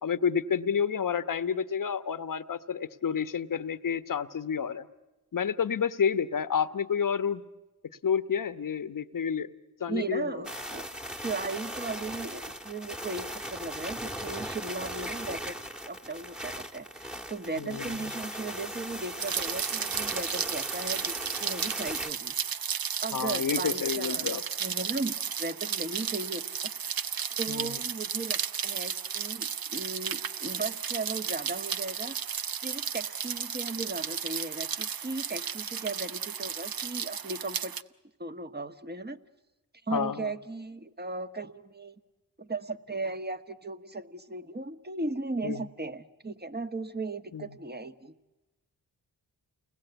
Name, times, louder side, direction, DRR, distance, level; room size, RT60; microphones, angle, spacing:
voice 1, 0.0-4.8 5.3-7.4 8.0-9.5 9.8-10.4 17.6-18.0 23.1-24.4 27.5-27.8 39.9-40.3 45.4-45.6 47.3-47.5, left 7 dB, 55° left, 12 dB, 1.2 m, -29 dB
voice 2, 9.9-10.8 11.2-15.6 15.8-22.3 23.0-26.7 27.4-32.2 32.6-37.8 38.2-39.2 39.9-42.0 42.4-48.1, right 3 dB, 25° right, 9 dB, 1.6 m, -37 dB
sound 1, 10.4-22.1, equal, ahead, 1.6 m, -38 dB
Rain, 19.2-37.8, right 8 dB, 60° right, 0.9 m, -33 dB
29.0 x 20.5 x 8.2 m, 1.1 s
supercardioid pair, 40°, 40 cm